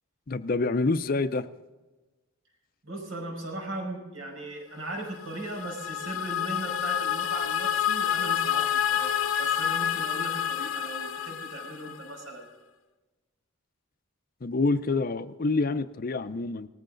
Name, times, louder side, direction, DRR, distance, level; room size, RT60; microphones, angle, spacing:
voice 1, 0.3-1.5 14.4-16.7, left 3 dB, 45° left, 12 dB, 0.5 m, -27 dB
voice 2, 2.8-12.5, right 2 dB, 80° right, 1 dB, 5.3 m, -38 dB
sound 1, 5.1-12.2, left 9 dB, 90° left, 0.9 m, -29 dB
19.0 x 14.5 x 3.9 m, 1.2 s
head